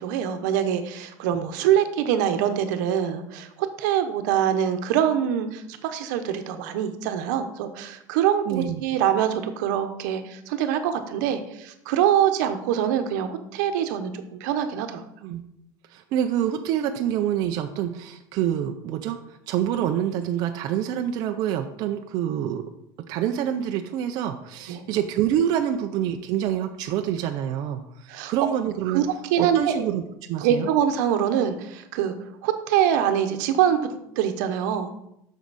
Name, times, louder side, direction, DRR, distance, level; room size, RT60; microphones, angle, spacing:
voice 1, 0.0-15.0 24.7-24.8 28.1-28.3 28.9-29.9 30.4-32.1 32.4-34.9, right 9 dB, 80° right, 8 dB, 0.9 m, -24 dB
voice 2, 8.5-8.8 15.2-15.4 15.9-19.2 19.5-22.6 23.1-29.0 29.4-30.0 30.3-30.7, right 10 dB, 45° right, 5 dB, 0.5 m, -26 dB
8.0 x 6.2 x 4.1 m, 0.80 s
cardioid pair, 175°, 10 cm